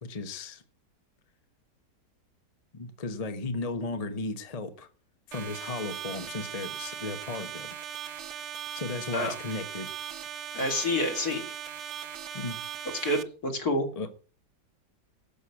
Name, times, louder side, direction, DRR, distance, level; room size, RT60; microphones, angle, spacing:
voice 1, 0.0-0.6 2.7-4.9 5.3-7.7 8.3-8.4 8.7-9.9 12.3-12.6 14.0-14.1, left 3 dB, 25° left, 0.9 m, -35 dB
sound 1, 5.3-13.2, right 9 dB, 50° right, 0.9 m, -39 dB
voice 2, 10.5-11.5 13.0-14.1, left 1 dB, 55° left, 3.3 m, -28 dB
12.5 x 6.3 x 8.4 m
omnidirectional pair, 1.9 m